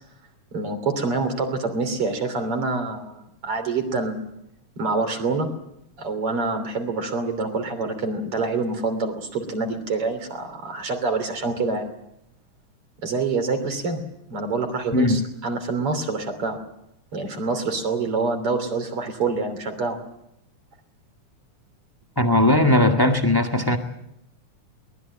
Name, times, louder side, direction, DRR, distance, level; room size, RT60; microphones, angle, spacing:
voice 1, 0.5-4.2 4.8-5.5 6.0-11.9 13.0-14.0 14.3-16.6 17.1-20.0, right 3 dB, 45° right, 7 dB, 3.9 m, -26 dB
voice 2, 14.9-15.2 22.2-23.8, left 1 dB, 20° left, 5 dB, 0.5 m, -18 dB
23.0 x 19.5 x 8.8 m, 0.82 s
omnidirectional pair, 3.5 m